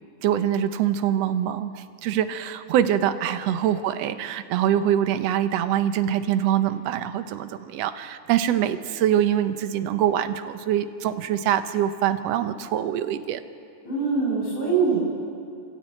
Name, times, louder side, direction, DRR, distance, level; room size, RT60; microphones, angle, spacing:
voice 1, 0.2-13.4, right 10 dB, 70° right, 10 dB, 1.8 m, -24 dB
voice 2, 13.8-15.0, right 5 dB, 45° left, -4 dB, 7.3 m, -23 dB
26.5 x 13.0 x 9.0 m, 2.4 s
omnidirectional pair, 3.4 m